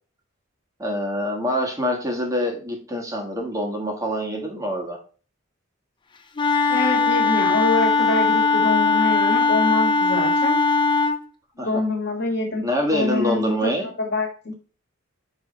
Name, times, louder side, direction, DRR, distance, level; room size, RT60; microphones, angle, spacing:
voice 1, 0.8-5.0 11.6-11.8 12.6-13.9, equal, 15° right, 1 dB, 1.3 m, -25 dB
Wind instrument woodwind instrument, 6.4-11.2, left 4 dB, 25° left, 0.5 m, -19 dB
voice 2, 6.7-10.6 11.6-12.6 12.9-13.7 14.0-14.3, left 2 dB, 55° left, 3 dB, 1.7 m, -25 dB
5.6 x 4.5 x 4.0 m, 0.38 s
head